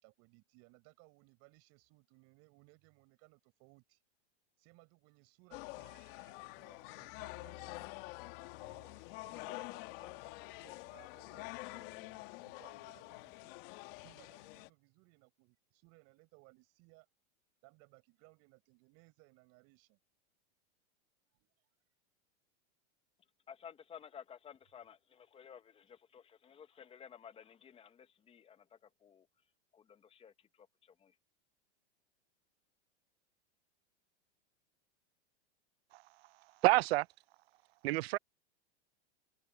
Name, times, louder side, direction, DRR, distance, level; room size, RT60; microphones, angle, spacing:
voice 1, 0.0-4.0 4.6-7.9 8.5-13.5 14.0-17.1 17.6-20.0 21.3-21.7 24.4-24.5, right 26 dB, 45° right, 4.9 m, -64 dB
sound 1, 5.5-14.7, left 24 dB, 50° left, 1.6 m, -47 dB
voice 2, 23.5-28.0 28.3-28.6 29.0-29.2 30.1-30.3 31.0-31.1, left 8 dB, 15° left, 1.0 m, -54 dB
voice 3, 36.6-37.1 37.8-38.2, right 21 dB, 60° right, 0.5 m, -28 dB
supercardioid pair, 140°, 35 cm